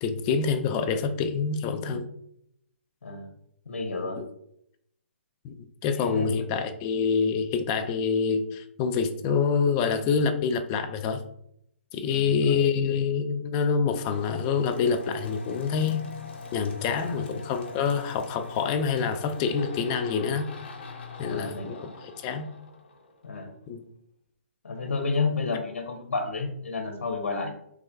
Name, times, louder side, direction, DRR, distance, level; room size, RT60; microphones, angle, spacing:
voice 1, 0.0-2.1 4.2-4.3 5.4-5.6 5.8-11.2 11.9-16.0 16.5-20.5 21.2-22.5 23.7-23.9, left 6 dB, 25° left, 8 dB, 0.4 m, -26 dB
voice 2, 3.7-4.2 6.0-6.4 12.1-12.6 17.0-17.2 17.7-17.8 21.3-22.0 23.2-23.5 24.6-27.5, left 4 dB, 85° left, 5 dB, 0.7 m, -31 dB
sound 1, 13.9-23.4, left 3 dB, 55° left, 0.8 m, -42 dB
3.1 x 2.4 x 3.4 m, 0.73 s
hypercardioid pair, 145°, 7 cm